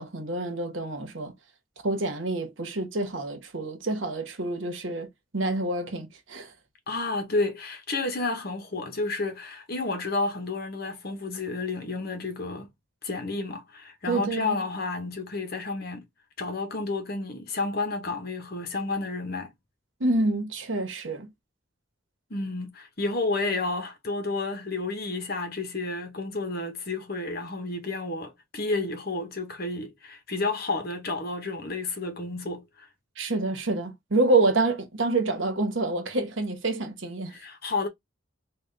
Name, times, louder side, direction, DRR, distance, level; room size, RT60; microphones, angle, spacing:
voice 1, 0.0-1.3 1.8-5.1 5.3-6.5 14.1-14.6 20.0-21.3 33.2-37.3, right 2 dB, 70° right, 1.0 m, -27 dB
voice 2, 6.9-12.7 13.0-16.0 16.4-19.5 22.3-32.9 37.3-37.9, left 3 dB, 50° left, 1.1 m, -31 dB
3.8 x 2.4 x 3.4 m
head